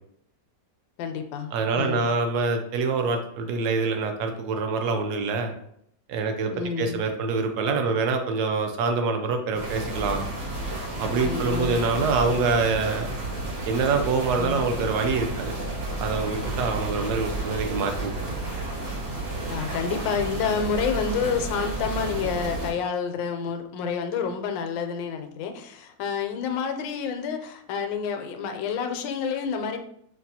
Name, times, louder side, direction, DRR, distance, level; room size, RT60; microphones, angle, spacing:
voice 1, 1.0-2.0 6.5-7.0 11.2-11.8 14.4-14.6 19.5-29.8, left 6 dB, 80° left, 6 dB, 1.2 m, -29 dB
voice 2, 1.5-5.5 6.1-10.2 11.0-13.1 13.7-15.5 16.0-18.4, right 4 dB, 70° right, 5 dB, 1.0 m, -25 dB
sound 1, 9.5-22.7, right 2 dB, 85° right, 2.1 m, -31 dB
5.9 x 2.2 x 2.7 m, 0.69 s
omnidirectional pair, 2.0 m